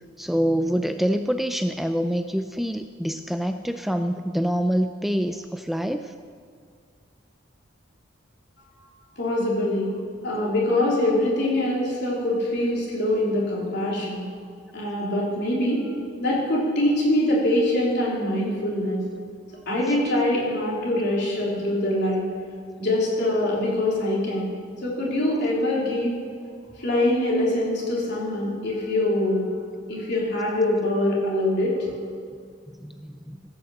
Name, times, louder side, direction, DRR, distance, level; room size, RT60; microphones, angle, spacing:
voice 1, 0.2-6.1 32.7-33.4, equal, ahead, 8 dB, 0.3 m, -26 dB
voice 2, 9.2-9.9 10.2-14.2 14.7-15.8 16.2-19.0 19.7-22.2 22.8-24.5 24.8-26.1 26.8-29.5 29.9-31.9, left 1 dB, 60° left, -5 dB, 3.4 m, -24 dB
15.0 x 6.6 x 7.6 m, 2.1 s
head